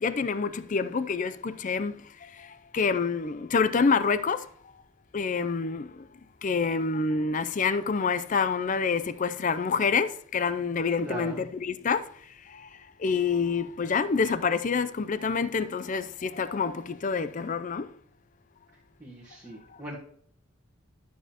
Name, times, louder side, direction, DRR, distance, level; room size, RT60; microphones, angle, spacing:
voice 1, 0.0-1.9 2.7-4.4 5.1-5.8 6.4-12.0 13.0-17.9, left 5 dB, 40° left, 0.4 m, -27 dB
voice 2, 11.0-11.4 19.0-19.9, right 1 dB, 15° right, 1.5 m, -39 dB
12.0 x 7.1 x 2.9 m
head